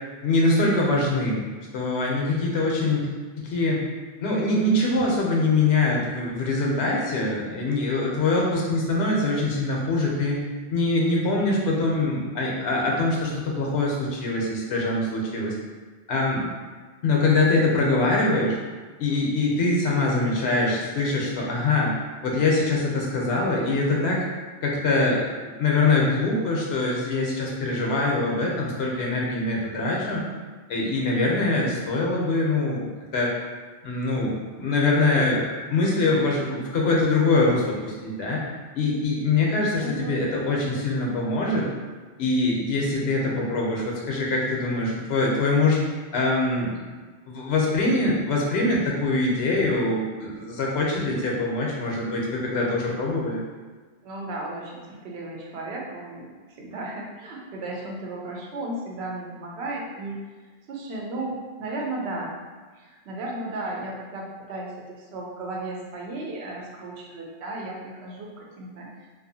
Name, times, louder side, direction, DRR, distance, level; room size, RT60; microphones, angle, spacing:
voice 1, 0.2-1.4 1.7-3.1 3.4-3.8 4.2-10.4 10.7-15.5 16.1-16.5 17.0-18.6 19.0-21.9 22.2-24.2 24.6-30.2 30.7-33.3 33.8-38.4 38.7-41.7 42.2-45.8 46.1-46.7 47.3-53.4, left 2 dB, 75° left, -2 dB, 0.9 m, -23 dB
voice 2, 39.8-40.2 54.0-56.3 56.6-60.2 60.7-62.4 62.8-68.9, right 2 dB, 75° right, -2 dB, 0.9 m, -34 dB
2.6 x 2.4 x 2.6 m, 1.4 s
omnidirectional pair, 1.1 m